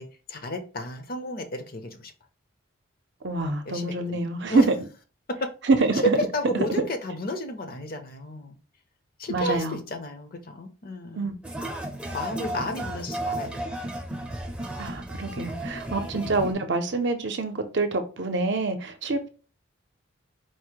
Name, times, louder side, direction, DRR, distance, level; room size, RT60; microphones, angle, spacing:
voice 1, 0.0-2.1 3.6-4.7 5.3-5.4 6.0-8.6 9.2-11.3 12.1-13.5 16.1-16.3, equal, 45° left, 0.6 m, -32 dB
voice 2, 3.2-4.6 5.7-6.2 9.3-9.8 11.1-11.3 14.8-19.3, right 3 dB, 55° right, 0.6 m, -26 dB
sound 1, 11.4-16.5, right 1 dB, 5° right, 0.5 m, -33 dB
4.5 x 2.1 x 4.6 m
head